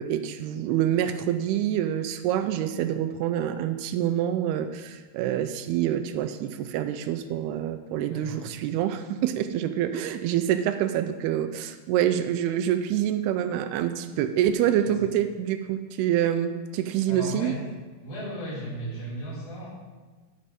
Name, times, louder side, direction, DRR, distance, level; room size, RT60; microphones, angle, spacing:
voice 1, 0.0-17.5, right 10 dB, 85° right, 9 dB, 2.6 m, -26 dB
voice 2, 8.1-8.4 14.7-14.9 17.1-17.6 18.0-19.7, equal, 65° left, -8 dB, 5.7 m, -35 dB
11.0 x 7.5 x 5.1 m, 1.3 s
omnidirectional pair, 4.6 m